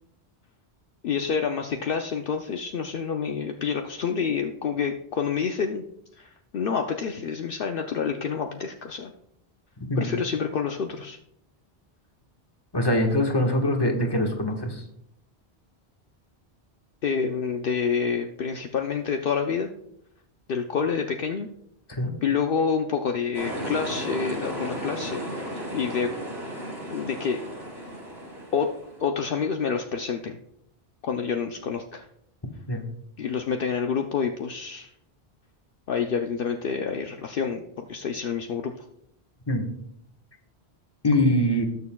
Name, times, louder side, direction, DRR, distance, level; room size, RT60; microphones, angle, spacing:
voice 1, 1.0-5.8 6.2-9.1 10.0-11.2 17.0-19.7 20.5-21.5 22.2-26.1 26.9-27.4 28.5-28.7 29.0-30.4 31.0-32.1 33.2-34.9 35.9-38.9, left 6 dB, 65° left, 4 dB, 0.8 m, -28 dB
voice 2, 12.7-14.7 22.0-22.1 32.7-32.8 39.5-39.7 41.0-41.6, left 1 dB, 25° left, 2 dB, 1.3 m, -23 dB
sound 1, 23.3-29.1, equal, 80° right, 4.8 m, -34 dB
19.5 x 6.6 x 2.3 m, 0.76 s
omnidirectional pair, 1.1 m